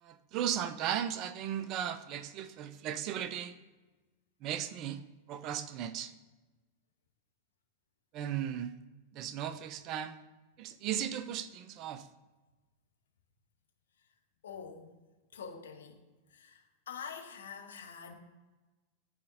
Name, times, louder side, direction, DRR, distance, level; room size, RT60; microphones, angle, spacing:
voice 1, 0.0-3.6 4.4-5.0 5.3-6.1 8.1-8.7 9.1-10.2 10.6-12.1, right 10 dB, 35° right, 12 dB, 0.5 m, -36 dB
voice 2, 14.4-14.9 15.3-16.0 16.3-18.2, left 6 dB, 65° left, 4 dB, 0.9 m, -46 dB
12.0 x 4.3 x 2.6 m, 1.2 s
figure-of-eight pair, 90°, 0 cm